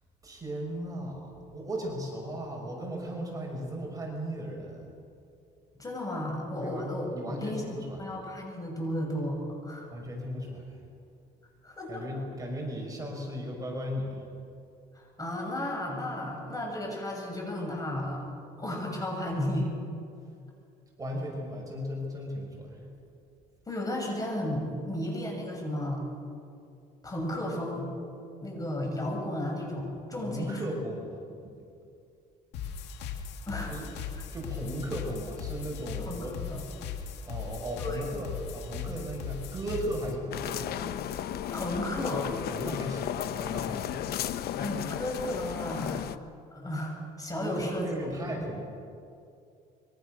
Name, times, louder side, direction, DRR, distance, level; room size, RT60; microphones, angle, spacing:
voice 1, 0.2-4.9 6.6-6.8 7.1-8.0 9.9-10.6 11.9-14.2 21.0-22.8 30.1-31.1 31.4-31.5 33.7-33.9 34.3-36.3 37.3-40.7 42.5-44.0 47.4-48.6, equal, 20° right, 0 dB, 6.1 m, -36 dB
voice 2, 5.8-7.6 8.0-9.4 9.6-9.9 11.6-12.1 14.9-18.2 18.6-19.7 23.7-26.0 27.0-27.9 28.4-30.6 33.5-33.7 34.0-34.2 36.0-36.6 37.8-38.0 41.5-42.3 44.6-46.0 46.5-47.9 48.1-48.4, left 1 dB, 20° left, 0 dB, 7.4 m, -33 dB
sound 1, 32.5-40.1, left 6 dB, 85° left, 2.5 m, -38 dB
sound 2, 40.3-46.2, left 10 dB, 70° left, 1.0 m, -34 dB
26.0 x 24.5 x 6.5 m, 2.5 s
cardioid pair, 110°, 17 cm